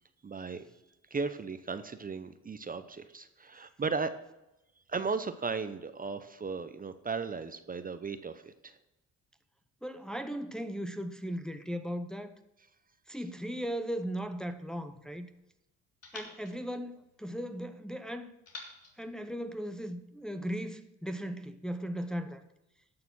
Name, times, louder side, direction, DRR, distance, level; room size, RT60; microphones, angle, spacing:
voice 1, 0.2-0.7 1.1-4.1 4.9-8.7, right 4 dB, 30° right, 0.8 m, -36 dB
voice 2, 9.8-12.3 13.1-15.3 16.1-18.3 19.0-22.4, equal, ahead, 0.8 m, -37 dB
sound 1, 14.2-15.4 16.0-17.6 18.5-20.0, left 3 dB, 55° left, 3.4 m, -52 dB
11.5 x 6.7 x 6.2 m
cardioid pair, 90°, 30 cm